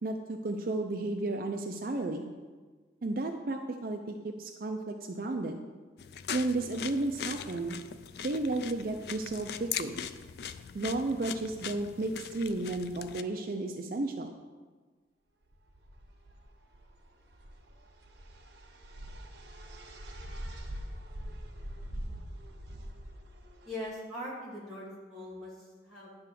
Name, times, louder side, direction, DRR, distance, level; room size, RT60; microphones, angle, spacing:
voice 1, 0.0-2.3 3.0-5.6 6.3-7.8 8.2-10.0 10.7-14.3, right 2 dB, 50° right, 4 dB, 0.5 m, -33 dB
sound 1, 6.0-13.2, left 8 dB, 60° left, 0.3 m, -40 dB
sound 2, 15.5-23.9, equal, 80° right, 1.0 m, -44 dB
voice 2, 23.7-26.2, left 1 dB, ahead, -6 dB, 2.2 m, -41 dB
9.8 x 3.5 x 6.7 m, 1.4 s
head